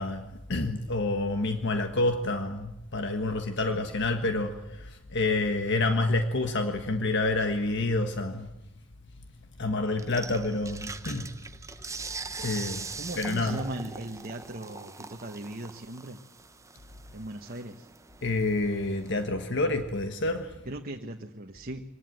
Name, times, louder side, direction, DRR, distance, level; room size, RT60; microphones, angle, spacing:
voice 1, 0.0-8.5 9.6-11.3 12.4-12.9 13.2-13.6 18.2-20.5, left 2 dB, 60° left, 7 dB, 1.5 m, -28 dB
sound 1, 10.0-19.2, right 4 dB, 15° right, 0.9 m, -42 dB
voice 2, 13.0-16.2 17.1-17.9 20.6-21.8, right 1 dB, 45° right, 3 dB, 1.3 m, -38 dB
24.5 x 19.5 x 9.2 m, 0.93 s
head